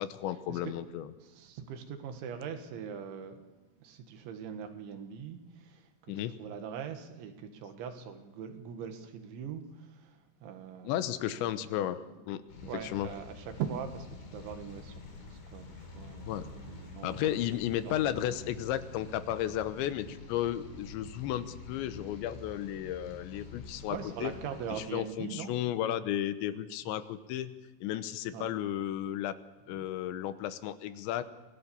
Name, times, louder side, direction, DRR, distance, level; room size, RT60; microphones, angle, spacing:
voice 1, 0.0-1.1 6.1-6.4 10.8-12.0 12.3-12.4 12.8-13.1 16.3-16.4 17.0-24.3 24.7-27.5 27.8-29.4 29.7-31.2, left 12 dB, 85° left, 12 dB, 3.3 m, -33 dB
voice 2, 1.2-11.6 12.4-17.4 17.8-18.5 23.9-25.6 26.9-27.0 28.3-28.5, right 7 dB, 85° right, 7 dB, 4.1 m, -42 dB
sound 1, 12.5-24.8, left 4 dB, 65° left, 5.9 m, -48 dB
25.0 x 17.5 x 7.1 m, 1.2 s
omnidirectional pair, 5.2 m